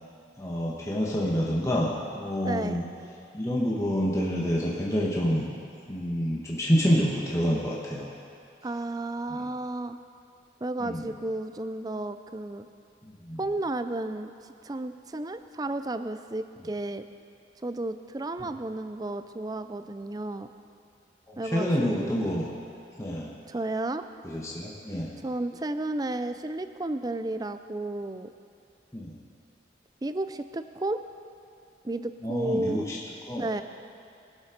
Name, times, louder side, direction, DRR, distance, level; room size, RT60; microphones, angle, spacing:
voice 1, 0.4-2.8 3.3-5.5 5.9-8.1 9.3-9.5 10.8-11.1 13.3-13.4 21.3-22.5 23.0-23.3 24.2-25.1 28.9-29.1 32.2-33.0 33.3-33.6, equal, 15° left, -4 dB, 1.3 m, -27 dB
voice 2, 2.4-2.8 8.6-10.0 10.6-12.7 13.4-14.3 14.6-17.0 17.6-20.5 21.4-22.2 23.5-24.0 25.2-28.3 30.0-31.0 31.8-32.9 33.4-33.6, right 2 dB, 20° right, 10 dB, 0.4 m, -32 dB
21.0 x 7.3 x 5.2 m, 2.4 s
head